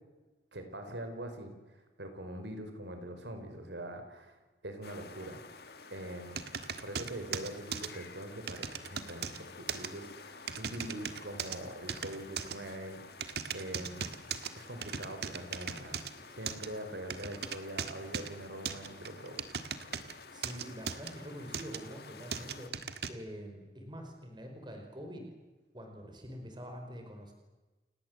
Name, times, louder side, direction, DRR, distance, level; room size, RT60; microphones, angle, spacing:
voice 1, 0.5-5.4 5.9-6.4 6.8-14.1 14.5-19.4, right 1 dB, 85° right, 6 dB, 4.4 m, -43 dB
sound 1, 4.8-22.7, left 4 dB, 60° left, 2.0 m, -52 dB
sound 2, 6.4-7.9 8.5-9.4 9.7-9.9 10.5-11.6 11.9-12.6 13.2-14.5 14.8-16.1 16.5-16.7 17.1-18.3 18.7-20.1 20.4-21.1 21.5-21.8 22.3-23.1, right 7 dB, 65° right, 1.6 m, -38 dB
voice 2, 20.3-22.7 23.1-25.3 25.7-27.3, equal, 25° right, 3 dB, 5.0 m, -45 dB
29.5 x 18.5 x 7.9 m, 1.2 s
head